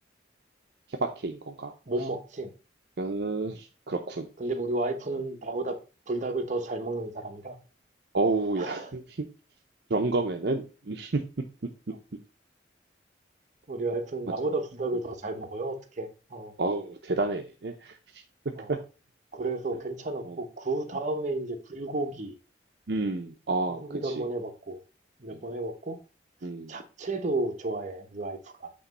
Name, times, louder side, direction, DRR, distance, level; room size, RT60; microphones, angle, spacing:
voice 1, 1.0-1.7 3.0-4.3 8.1-9.0 9.9-11.2 16.6-17.9 18.7-18.8 20.2-20.4 22.9-24.2 26.4-26.7, right 3 dB, 60° right, 0.7 m, -29 dB
voice 2, 1.9-2.5 4.4-5.8 6.1-7.6 8.6-8.9 13.7-16.5 18.6-18.7 19.3-22.3 23.7-24.8 25.2-26.0 26.7-28.7, right 2 dB, 40° right, 1.0 m, -32 dB
8.6 x 3.0 x 5.4 m
head